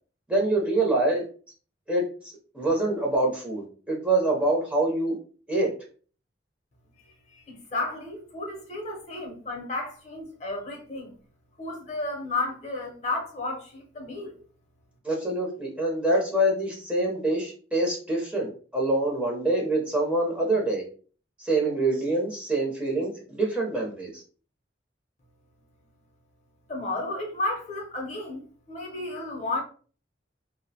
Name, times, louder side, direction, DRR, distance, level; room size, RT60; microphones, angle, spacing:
voice 1, 0.3-1.2 1.9-2.0 2.5-5.1 5.5-5.7 15.0-20.8 21.4-24.2, right 2 dB, 5° right, 0.6 m, -25 dB
voice 2, 7.3-11.1 11.6-14.4 26.7-29.6, left 2 dB, 40° left, 0.6 m, -33 dB
2.6 x 2.0 x 2.7 m
head